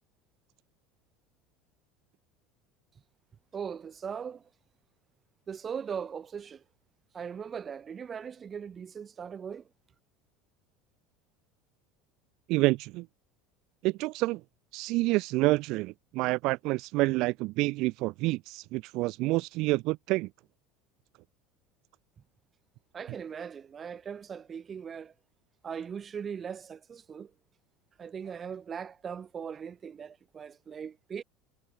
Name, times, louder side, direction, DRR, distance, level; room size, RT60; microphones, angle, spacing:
voice 1, 3.5-4.4 5.5-6.6 7.1-9.6 22.9-25.1 25.6-27.3 28.0-31.2, right 7 dB, 30° right, 5.5 m, -39 dB
voice 2, 12.5-13.1 13.8-14.4 14.7-20.3, right 21 dB, 65° right, 2.3 m, -28 dB
supercardioid pair, 100°, 0 cm